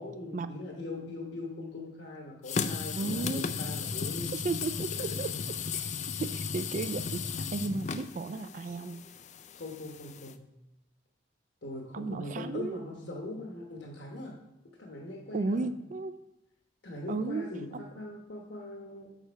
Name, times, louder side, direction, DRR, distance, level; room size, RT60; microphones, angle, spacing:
voice 1, 0.0-4.3 9.5-10.4 11.6-14.3 14.8-15.7 16.8-19.2, left 2 dB, 65° left, -1 dB, 1.1 m, -41 dB
sound 1, 2.5-10.3, left 6 dB, 40° left, 0.4 m, -35 dB
voice 2, 3.0-3.5 4.3-5.3 5.7-5.9 6.2-9.0 11.9-12.8 15.3-16.2 17.1-17.8, right 3 dB, 45° right, 11 dB, 0.3 m, -34 dB
6.6 x 6.3 x 4.6 m, 0.92 s
head